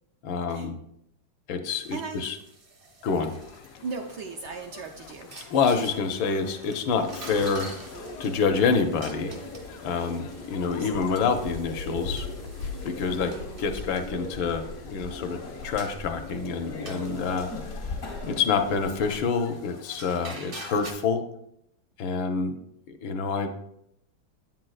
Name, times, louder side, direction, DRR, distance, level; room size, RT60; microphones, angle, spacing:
voice 1, 0.2-0.8 1.5-2.3 3.0-3.3 5.5-7.7 8.2-9.3 9.8-12.3 12.8-13.3 13.6-15.4 15.6-17.9 18.3-21.2 22.0-22.5 23.0-23.5, left 5 dB, 75° left, 7 dB, 1.3 m, -27 dB
sound 1, 1.7-20.9, right 2 dB, 45° right, 0.7 m, -48 dB
voice 2, 1.9-2.2 3.3-3.4 3.8-5.3 10.7-11.1 13.1-13.6, right 4 dB, 75° right, 1 dB, 1.0 m, -38 dB
sound 2, 3.1-20.3, left 5 dB, 90° left, 1.5 m, -43 dB
sound 3, 6.9-19.2, left 2 dB, 50° left, 0.6 m, -39 dB
8.1 x 7.5 x 2.3 m, 0.76 s
omnidirectional pair, 2.3 m